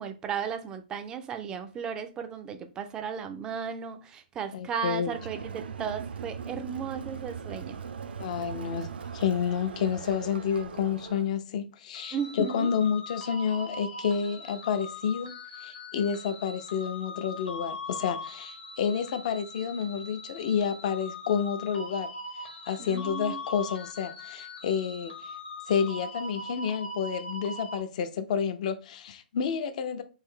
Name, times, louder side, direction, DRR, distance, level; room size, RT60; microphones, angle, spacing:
voice 1, 0.0-7.8 12.1-12.8 22.8-23.4, right 7 dB, 15° right, 0.3 m, -35 dB
voice 2, 4.5-5.1 8.2-15.3 15.6-22.1 22.7-25.1 25.7-30.0, left 7 dB, 45° left, 0.5 m, -29 dB
Crowd, 5.0-11.3, right 6 dB, 85° right, 0.5 m, -40 dB
sound 1, 11.9-27.8, left 2 dB, 90° left, 1.1 m, -41 dB
3.2 x 2.6 x 3.7 m
hypercardioid pair, 160°, 5 cm